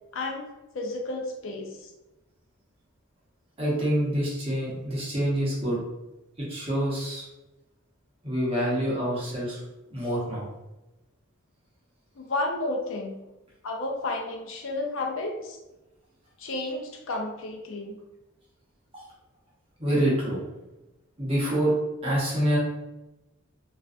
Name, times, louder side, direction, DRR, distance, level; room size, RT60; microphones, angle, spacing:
voice 1, 0.1-0.5 0.7-1.9 12.2-13.1 13.6-15.6 16.4-18.0, left 2 dB, 60° left, 2 dB, 0.5 m, -32 dB
voice 2, 3.6-5.8 6.4-7.2 8.2-9.6 9.9-10.5 18.9-19.0 19.8-20.5 21.2-21.7 22.0-22.6, right 1 dB, 25° right, -6 dB, 0.8 m, -26 dB
2.4 x 2.2 x 2.4 m, 0.98 s
head